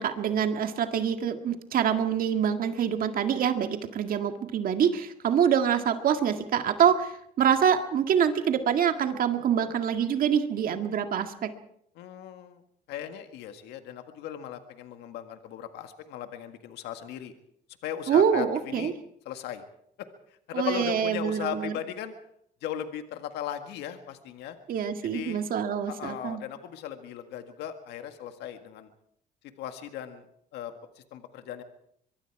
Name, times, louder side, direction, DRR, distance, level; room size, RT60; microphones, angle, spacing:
voice 1, 0.0-11.5 18.1-18.9 20.5-21.7 24.7-26.4, right 8 dB, 55° right, 7 dB, 1.9 m, -25 dB
voice 2, 12.0-12.6 12.9-17.3 17.8-18.9 19.3-19.6 20.0-20.1 20.5-22.1 22.6-24.6 25.1-25.4 25.9-28.9 29.6-30.2 30.5-30.7 31.1-31.6, left 10 dB, 85° left, 7 dB, 1.8 m, -37 dB
24.0 x 23.0 x 4.8 m, 0.71 s
cardioid pair, 110°, 17 cm